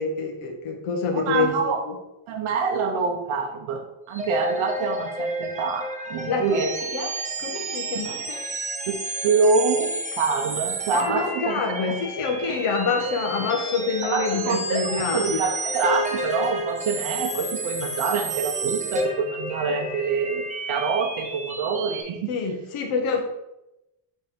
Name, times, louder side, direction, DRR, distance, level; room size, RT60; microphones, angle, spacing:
voice 1, 0.0-1.5 1.8-1.9 6.3-7.1 7.4-8.4 10.9-15.4 22.3-23.2, left 4 dB, 85° left, 3 dB, 1.4 m, -26 dB
voice 2, 1.1-1.8 2.3-6.7 8.9-9.0 9.2-11.6 11.9-12.0 14.1-22.3, right 5 dB, 75° right, 2 dB, 1.0 m, -26 dB
sound 1, 4.1-22.0, right 1 dB, 15° right, 0.7 m, -31 dB
6.9 x 3.6 x 4.3 m, 0.91 s
cardioid pair, 155°, 50 cm